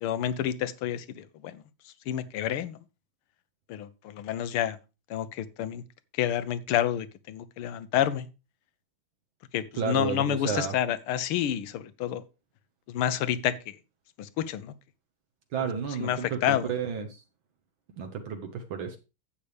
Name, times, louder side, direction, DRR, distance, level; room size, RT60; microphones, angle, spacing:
voice 1, 0.0-1.6 2.1-2.8 3.7-4.8 5.1-5.8 6.2-8.3 9.5-12.2 12.9-13.6 14.2-14.7 16.0-16.7, left 10 dB, 85° left, 14 dB, 1.7 m, -29 dB
voice 2, 9.7-10.7 15.5-17.2 18.0-19.0, right 6 dB, 70° right, 5 dB, 1.8 m, -32 dB
11.0 x 8.3 x 3.4 m, 0.29 s
omnidirectional pair, 2.3 m